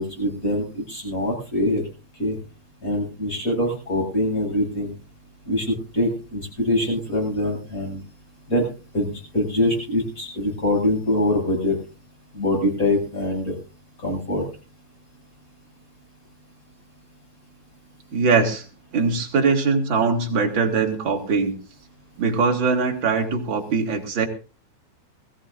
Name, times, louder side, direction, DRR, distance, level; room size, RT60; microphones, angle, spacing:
voice 1, 0.0-1.8 2.2-2.4 2.8-4.9 5.5-8.0 8.5-8.6 8.9-11.8 12.3-13.5 14.0-14.4, left 1 dB, 25° left, -1 dB, 7.8 m, -24 dB
voice 2, 18.1-18.6 18.9-21.6 22.2-24.3, right 4 dB, 40° right, 2 dB, 2.7 m, -21 dB
21.5 x 15.5 x 2.6 m, 0.34 s
omnidirectional pair, 3.6 m